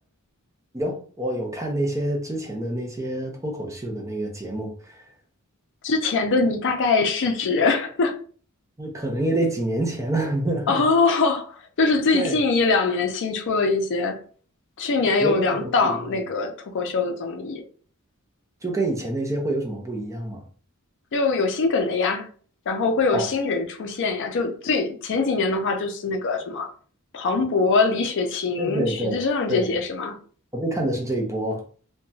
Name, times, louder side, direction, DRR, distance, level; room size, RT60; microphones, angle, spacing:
voice 1, 0.7-4.7 8.8-10.8 12.1-12.4 15.2-15.7 18.6-20.4 23.1-23.3 28.6-29.2 29.5-29.6 30.5-31.6, right 1 dB, 15° right, 0.5 m, -27 dB
voice 2, 5.8-8.2 10.7-14.2 14.8-17.6 21.1-22.3 22.7-26.7 27.1-30.2, left 4 dB, 60° left, 0.5 m, -23 dB
2.8 x 2.2 x 2.6 m
head